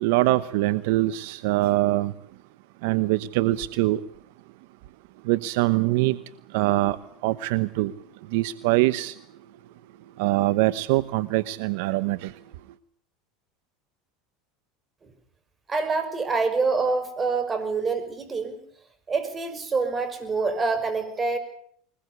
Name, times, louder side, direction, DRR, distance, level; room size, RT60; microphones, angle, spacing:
voice 1, 0.0-2.1 2.8-4.0 5.3-6.2 6.5-7.0 7.2-7.9 8.3-9.1 10.2-12.2, right 17 dB, 75° right, 0.9 m, -23 dB
voice 2, 15.7-18.6 19.1-21.4, right 4 dB, 25° right, 5.8 m, -26 dB
22.5 x 20.5 x 8.2 m
supercardioid pair, 105°, 0 cm